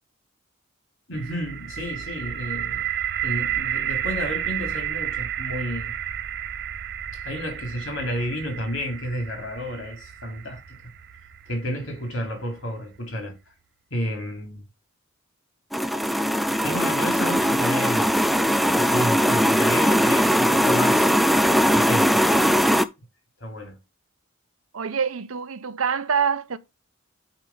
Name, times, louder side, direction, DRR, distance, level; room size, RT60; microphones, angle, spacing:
voice 1, 1.1-2.9 3.2-5.9 7.1-10.8 11.5-13.4 13.9-14.6 16.6-18.3 18.8-21.1 21.7-22.3 23.4-23.8, equal, 65° left, 2.9 m, -31 dB
sound 1, 1.1-13.0, right 10 dB, 50° right, 0.5 m, -32 dB
sound 2, 15.7-22.8, equal, ahead, 0.3 m, -20 dB
voice 2, 24.7-26.6, right 6 dB, 85° right, 0.7 m, -25 dB
8.9 x 3.3 x 5.4 m
head